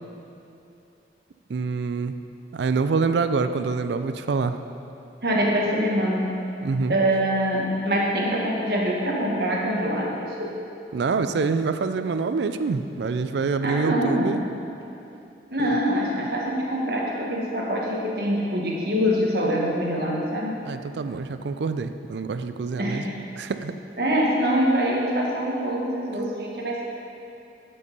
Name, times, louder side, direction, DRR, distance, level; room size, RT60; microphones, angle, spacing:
voice 1, 1.5-2.2 2.5-4.6 6.6-6.9 10.9-14.5 15.6-15.8 20.6-23.0 23.4-23.8, right 4 dB, 75° right, 9 dB, 0.4 m, -26 dB
voice 2, 5.2-6.3 6.9-10.1 10.4-10.5 13.6-14.4 15.5-20.6 22.8-23.1 24.0-26.8, equal, 60° right, -3 dB, 1.6 m, -24 dB
11.0 x 5.4 x 5.4 m, 2.7 s
head